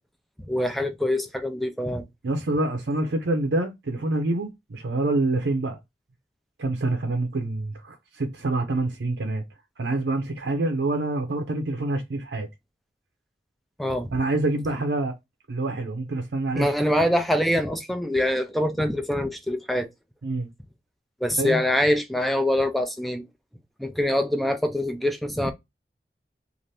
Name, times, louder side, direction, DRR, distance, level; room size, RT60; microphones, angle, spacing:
voice 1, 0.5-2.0 13.8-14.1 16.6-19.9 21.2-23.2 23.8-25.5, left 1 dB, ahead, 0.3 m, -24 dB
voice 2, 2.2-5.8 6.6-9.4 9.8-12.5 14.1-15.1 15.5-16.7 20.2-20.5 21.4-21.6, right 2 dB, 85° right, 0.6 m, -26 dB
2.7 x 2.5 x 3.2 m
head